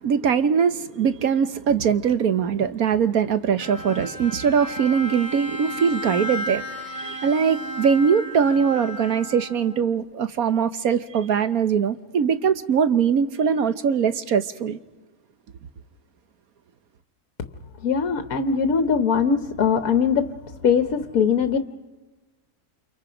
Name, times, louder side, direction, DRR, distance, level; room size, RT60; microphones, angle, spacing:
voice 1, 0.0-14.8, right 7 dB, 70° right, 1.4 m, -22 dB
Bowed string instrument, 3.6-10.0, equal, 30° left, 3.6 m, -34 dB
voice 2, 17.8-20.2 20.6-21.6, left 6 dB, 65° left, 1.4 m, -21 dB
30.0 x 28.0 x 5.1 m
omnidirectional pair, 1.7 m